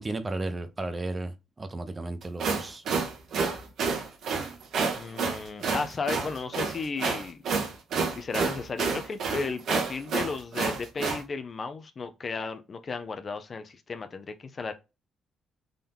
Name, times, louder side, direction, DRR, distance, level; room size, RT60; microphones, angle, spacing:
voice 1, 0.0-2.8, right 2 dB, 25° right, 0.7 m, -34 dB
sound 1, 2.2-11.2, right 5 dB, 70° right, 1.1 m, -29 dB
voice 2, 4.9-7.4 8.2-14.7, left 4 dB, 40° left, 0.5 m, -34 dB
3.8 x 2.8 x 3.5 m
cardioid pair, 90°, 0 cm